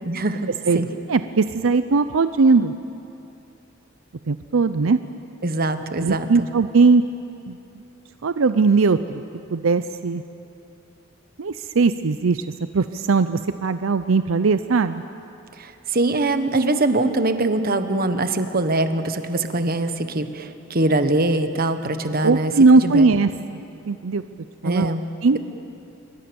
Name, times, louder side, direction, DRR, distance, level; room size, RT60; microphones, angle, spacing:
voice 1, 0.0-0.9 5.4-6.5 15.6-23.1 24.6-25.0, right 2 dB, 50° right, 9 dB, 1.3 m, -23 dB
voice 2, 1.1-2.7 4.3-5.0 6.0-7.0 7.5-7.6 8.2-9.2 9.5-10.2 11.4-12.4 12.7-15.0 22.2-23.3 23.9-24.2 24.6-24.9 25.2-25.4, right 4 dB, 80° right, 11 dB, 0.6 m, -19 dB
27.5 x 23.0 x 7.1 m, 2.8 s
head